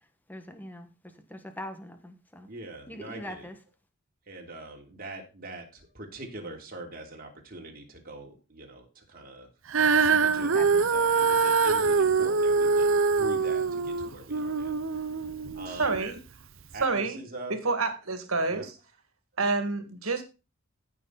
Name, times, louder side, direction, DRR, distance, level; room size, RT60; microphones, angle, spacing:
voice 1, 0.3-2.5 2.9-3.6 10.4-10.9, left 1 dB, 10° left, 7 dB, 1.5 m, -42 dB
voice 2, 2.5-3.5 4.3-9.5 10.0-14.7 15.5-16.0 16.7-17.5 18.5-18.7, right 2 dB, 45° right, 1 dB, 3.0 m, -43 dB
Female singing, 9.7-16.0 16.7-16.8, right 5 dB, 65° right, 0.8 m, -24 dB
voice 3, 15.7-16.2 16.8-17.2 17.5-18.8 19.4-20.2, right 3 dB, 85° right, 8 dB, 2.0 m, -28 dB
15.0 x 6.5 x 4.1 m, 0.30 s
head